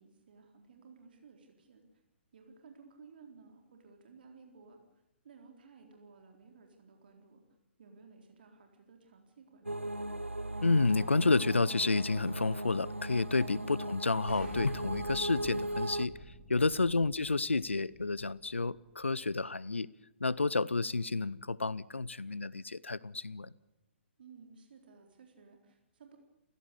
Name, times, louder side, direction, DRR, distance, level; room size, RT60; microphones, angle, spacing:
voice 1, 0.0-1.8 2.3-4.8 5.2-7.4 7.8-9.9 13.5-13.7 16.8-16.9 24.2-26.2, right 5 dB, 50° right, 4.0 m, -57 dB
sound 1, 9.6-16.1, right 1 dB, 85° right, 1.2 m, -38 dB
voice 2, 10.6-16.2 16.5-19.9 20.2-23.5, left 3 dB, 75° left, 0.7 m, -30 dB
Explosion, 14.3-19.1, left 1 dB, 5° left, 7.9 m, -50 dB
29.5 x 16.0 x 8.4 m
figure-of-eight pair, 125°, 7 cm